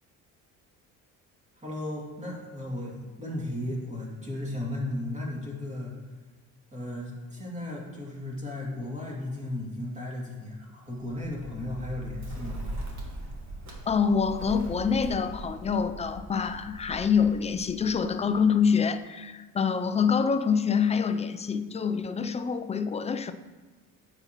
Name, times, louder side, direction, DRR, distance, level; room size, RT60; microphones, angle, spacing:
voice 1, 1.5-5.9 6.7-12.6, left 1 dB, 20° right, -4 dB, 2.5 m, -35 dB
Bird, 10.9-18.7, right 1 dB, 50° right, 1.6 m, -40 dB
voice 2, 13.9-23.3, left 6 dB, 20° left, 9 dB, 0.4 m, -26 dB
9.6 x 6.8 x 3.0 m, 1.3 s
cardioid pair, 120°, 34 cm